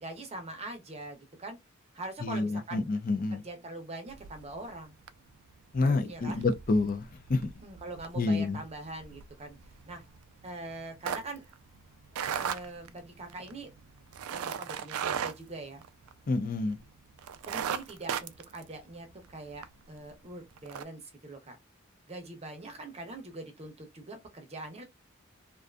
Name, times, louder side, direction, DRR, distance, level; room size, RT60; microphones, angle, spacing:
voice 1, 0.0-1.6 1.9-2.8 3.3-5.0 5.8-6.5 7.6-9.6 9.9-10.0 10.4-11.5 12.3-13.7 14.3-15.8 17.4-21.6 22.1-24.8, right 2 dB, 30° right, 0.6 m, -43 dB
voice 2, 2.2-3.4 5.7-7.5 8.2-8.6 16.3-16.8, left 3 dB, 40° left, 0.4 m, -28 dB
sound 1, 4.1-4.7 5.1-5.3 5.7-16.4 16.8-16.9 17.2-19.7 20.1-20.2 20.6-20.8, right 8 dB, 85° right, 0.3 m, -37 dB
2.5 x 2.4 x 2.2 m
head